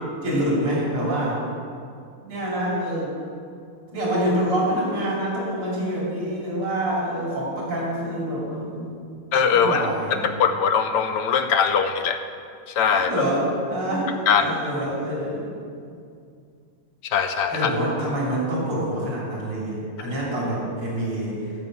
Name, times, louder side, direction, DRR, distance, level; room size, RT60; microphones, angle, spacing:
voice 1, 0.2-1.4 2.2-3.1 3.9-9.0 9.5-10.3 12.9-15.5 17.5-21.4, right 1 dB, 85° right, -6 dB, 4.0 m, -26 dB
voice 2, 9.3-9.9 10.2-12.2 12.7-13.1 14.3-14.5 17.1-17.7, left 6 dB, 70° left, 7 dB, 1.0 m, -21 dB
16.0 x 5.4 x 6.3 m, 2.3 s
omnidirectional pair, 2.3 m